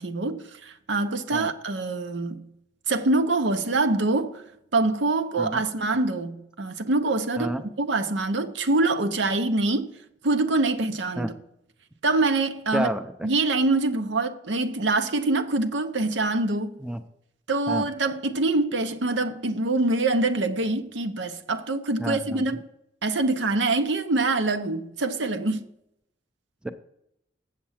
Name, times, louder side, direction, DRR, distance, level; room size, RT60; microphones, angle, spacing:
voice 1, 0.0-2.5 2.9-4.4 4.7-7.5 7.8-9.9 10.2-11.3 12.0-12.9 13.2-16.7 17.5-22.6 23.0-25.6, right 2 dB, 80° right, 0.8 m, -25 dB
voice 2, 7.4-7.7 11.2-11.3 12.7-13.3 16.8-17.0 17.7-17.8 22.0-22.4 26.6-26.7, right 1 dB, 5° right, 0.5 m, -29 dB
7.6 x 7.4 x 5.7 m
head